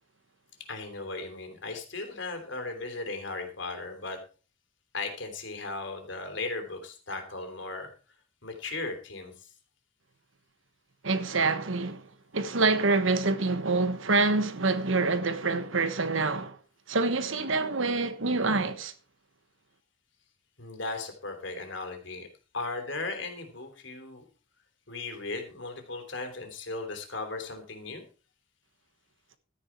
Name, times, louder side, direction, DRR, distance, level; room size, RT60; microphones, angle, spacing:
voice 1, 0.7-4.2 4.9-7.9 8.4-9.5 20.6-22.3 22.5-24.2 24.9-28.0, left 3 dB, 75° left, 3.3 m, -37 dB
voice 2, 11.0-12.1 12.3-16.6 16.9-18.9, right 3 dB, 85° right, 1.3 m, -26 dB
13.0 x 9.8 x 4.6 m
head